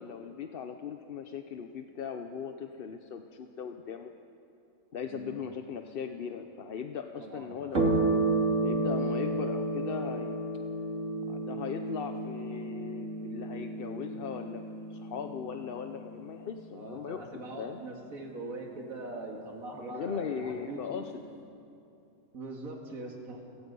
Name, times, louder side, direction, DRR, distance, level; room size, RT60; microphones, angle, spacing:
voice 1, 0.0-4.1 4.9-8.0 8.6-10.4 11.3-14.6 14.9-17.8 19.8-21.1, left 7 dB, 50° left, 6 dB, 0.8 m, -39 dB
voice 2, 5.1-5.4 7.2-7.6 16.7-21.0 22.3-23.4, right 2 dB, 75° right, 1 dB, 2.5 m, -42 dB
sound 1, 7.7-16.6, right 2 dB, 60° right, 2.8 m, -31 dB
29.0 x 17.0 x 5.4 m, 2.7 s
omnidirectional pair, 1.5 m